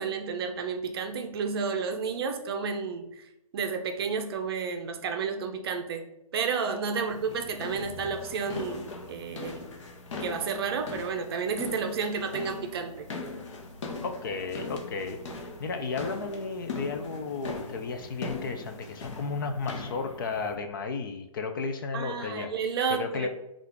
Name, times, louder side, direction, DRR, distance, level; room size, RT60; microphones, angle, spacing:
voice 1, 0.0-3.3 3.5-9.7 10.2-13.1 21.9-23.3, right 5 dB, 40° right, 5 dB, 0.5 m, -31 dB
sound 1, 7.1-20.6, left 3 dB, 55° left, 0.8 m, -40 dB
voice 2, 14.0-22.5 22.9-23.3, left 4 dB, 35° left, 6 dB, 0.4 m, -33 dB
5.4 x 2.4 x 3.4 m, 0.90 s
hypercardioid pair, 150°, 19 cm